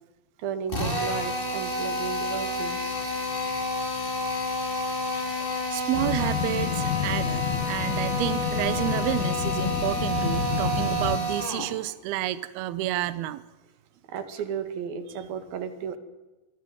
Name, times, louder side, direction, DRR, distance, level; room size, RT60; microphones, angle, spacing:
voice 1, 0.4-3.0 5.2-5.6 14.1-16.0, right 7 dB, 55° right, 8 dB, 3.5 m, -34 dB
Drill, 0.7-11.7, left 1 dB, 10° left, 3.3 m, -30 dB
voice 2, 3.3-3.8 5.1-5.2 5.5-13.4, right 14 dB, 85° right, 15 dB, 2.2 m, -30 dB
sound 1, 5.9-11.2, left 8 dB, 90° left, 1.6 m, -29 dB
25.0 x 14.0 x 9.4 m, 1.1 s
omnidirectional pair, 5.7 m